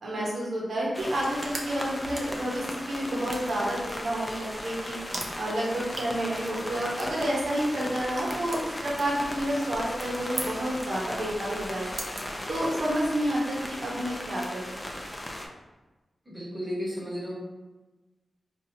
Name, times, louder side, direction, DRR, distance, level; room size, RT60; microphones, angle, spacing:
voice 1, 0.0-5.0 5.4-12.0 12.5-14.8, right 1 dB, 75° right, -5 dB, 1.0 m, -30 dB
sound 1, 0.9-15.5, left 1 dB, 20° left, 0.5 m, -37 dB
sound 2, 1.0-13.0, right 2 dB, 55° right, 0.6 m, -44 dB
voice 2, 16.3-17.3, equal, 25° right, -4 dB, 1.3 m, -33 dB
4.2 x 2.5 x 2.8 m, 1.2 s
cardioid pair, 55°, 0 cm